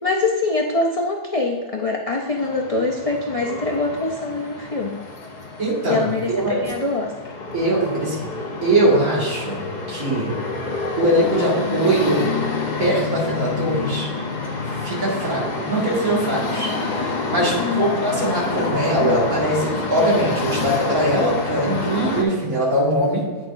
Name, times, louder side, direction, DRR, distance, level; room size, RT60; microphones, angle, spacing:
voice 1, 0.0-5.0 5.9-7.1 17.6-17.9, left 3 dB, 70° left, 0 dB, 0.3 m, -24 dB
sound 1, 2.4-22.2, left 4 dB, 35° left, 0.8 m, -28 dB
voice 2, 5.6-6.6 7.5-8.3 8.6-9.6 9.9-10.3 11.0-12.3 12.8-14.1 14.6-23.2, right 1 dB, 65° right, -5 dB, 2.5 m, -21 dB
8.9 x 6.4 x 2.6 m, 1.5 s
omnidirectional pair, 1.6 m